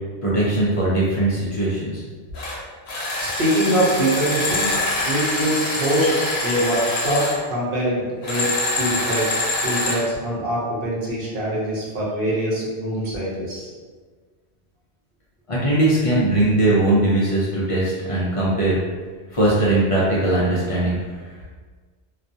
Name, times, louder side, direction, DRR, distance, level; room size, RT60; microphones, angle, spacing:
voice 1, 0.2-2.0 15.5-18.8 19.3-21.3, right 1 dB, 50° left, -7 dB, 0.4 m, -20 dB
sound 1, 2.3-2.6 2.9-7.4 8.2-10.0, left 2 dB, 70° left, 0.8 m, -25 dB
voice 2, 3.2-4.7 5.0-6.1 6.4-8.5 8.8-9.4 9.6-13.7, right 1 dB, 60° right, -6 dB, 0.8 m, -23 dB
2.4 x 2.2 x 2.6 m, 1.5 s
omnidirectional pair, 1.1 m